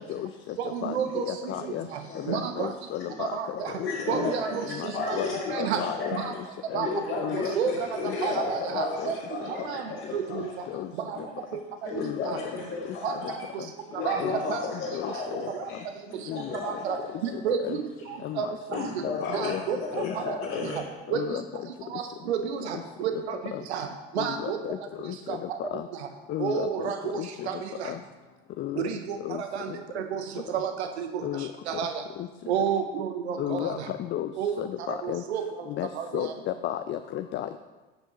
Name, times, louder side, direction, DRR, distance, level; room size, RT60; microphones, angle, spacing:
voice 1, 0.6-1.4 1.9-2.0 2.3-2.7 3.2-3.7 4.1-5.2 5.5-5.8 6.1-6.3 6.7-6.9 7.3-7.7 8.2-9.2 9.5-9.8 10.1-10.5 11.1-11.2 12.3-12.4 13.0-13.2 14.0-14.6 15.5-15.7 16.6-17.0 17.2-17.8 18.1-18.9 19.3-20.4 21.1-21.3 21.9-23.4 23.7-23.9 24.1-24.6 25.3-25.6 26.4-27.9 28.8-30.2 30.5-31.1 31.7-32.0 32.5-33.9 34.4-34.5 34.9-35.5 35.9-36.3, right 8 dB, 80° right, 7 dB, 0.7 m, -31 dB
voice 2, 1.3-1.8 2.3-3.3 4.1-4.3 5.2-5.3 5.6-6.2 6.7-6.8 7.2-7.7 8.0-8.1 9.0-9.1 10.7-10.9 12.0-12.3 14.2-14.3 14.9-15.1 16.3-16.6 17.6-17.8 18.2-18.4 18.7-18.9 19.2-19.6 20.0-20.1 20.6-20.7 21.1-21.4 24.2-24.8 25.6-25.8 26.3-26.7 27.1-27.3 28.6-28.8 29.2-29.4 31.2-31.5 33.4-33.8 34.1-34.3 34.6-35.2 35.8-35.9 36.1-36.3 36.6-37.6, left 12 dB, 35° left, 9 dB, 0.4 m, -32 dB
voice 3, 1.8-2.3 3.8-4.7 4.9-6.3 6.8-10.7 11.2-11.3 11.8-13.3 13.9-15.9 16.3-17.3 18.0-18.1 18.7-20.8, left 3 dB, 80° left, -9 dB, 2.3 m, -33 dB
15.5 x 5.4 x 3.0 m, 1.2 s
hypercardioid pair, 70°, 33 cm